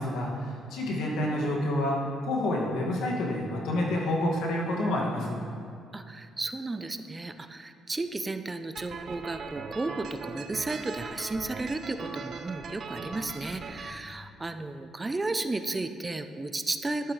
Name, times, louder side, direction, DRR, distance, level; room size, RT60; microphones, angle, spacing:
voice 1, 0.0-2.0 2.2-5.4, left 1 dB, 80° left, -2 dB, 2.1 m, -28 dB
voice 2, 5.9-17.1, right 2 dB, 20° right, 9 dB, 0.6 m, -33 dB
sound 1, 8.8-13.9, right 4 dB, 55° right, 0.8 m, -40 dB
12.0 x 11.0 x 3.3 m, 2.4 s
cardioid pair, 90°, 0 cm